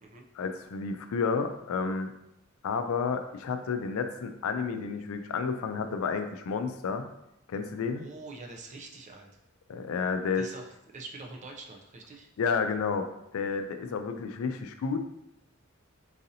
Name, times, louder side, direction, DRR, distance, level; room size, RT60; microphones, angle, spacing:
voice 1, 0.4-2.1 2.6-7.1 7.5-8.1 9.7-10.4 12.4-13.1 13.3-15.0, left 5 dB, 75° left, 7 dB, 0.3 m, -31 dB
voice 2, 7.9-9.3 10.4-12.3, right 3 dB, 35° right, 2 dB, 0.4 m, -45 dB
3.9 x 2.6 x 2.7 m, 0.84 s
head